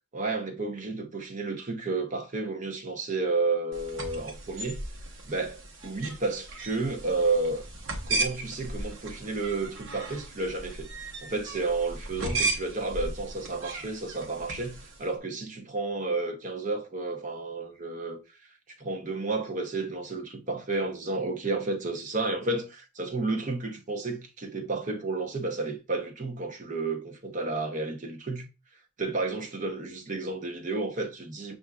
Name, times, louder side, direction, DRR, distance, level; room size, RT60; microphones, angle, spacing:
voice 1, 0.1-4.9 5.2-7.6 8.1-10.9 11.2-18.2 18.8-28.5 29.0-31.6, right 3 dB, 40° right, 0.7 m, -31 dB
sound 1, 3.7-15.1, right 2 dB, 65° right, 1.0 m, -36 dB
6.9 x 2.5 x 2.3 m
head